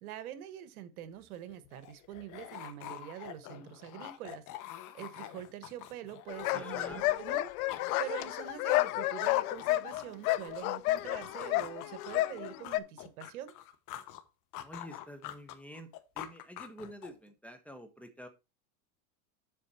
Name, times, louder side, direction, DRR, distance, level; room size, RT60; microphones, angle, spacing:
voice 1, 0.0-4.4 4.7-13.5, right 11 dB, 75° right, 1.4 m, -45 dB
sound 1, 1.1-7.0 7.3-10.8 11.2-14.2 14.5-17.3, left 12 dB, 45° left, 1.1 m, -47 dB
sound 2, 6.3-12.8, left 17 dB, 75° left, 0.7 m, -31 dB
voice 2, 6.5-7.0 14.6-15.9 16.1-18.3, equal, 5° left, 1.2 m, -48 dB
7.7 x 6.3 x 4.3 m
supercardioid pair, 120°, 44 cm